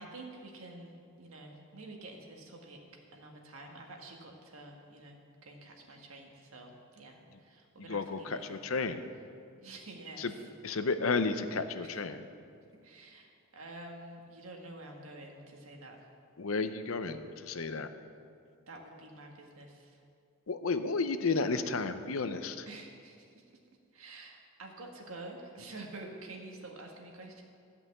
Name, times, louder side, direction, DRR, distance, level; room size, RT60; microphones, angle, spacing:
voice 1, 0.0-2.8 3.1-8.6 9.6-10.5 11.8-12.0 12.8-16.1 18.7-20.0 22.7-23.5 23.9-27.4, right 2 dB, 85° right, 1 dB, 1.7 m, -48 dB
voice 2, 7.9-9.0 10.2-10.3 10.6-12.2 16.4-17.9 20.5-22.7, left 4 dB, 75° left, 10 dB, 0.7 m, -32 dB
13.0 x 5.7 x 8.3 m, 2.3 s
head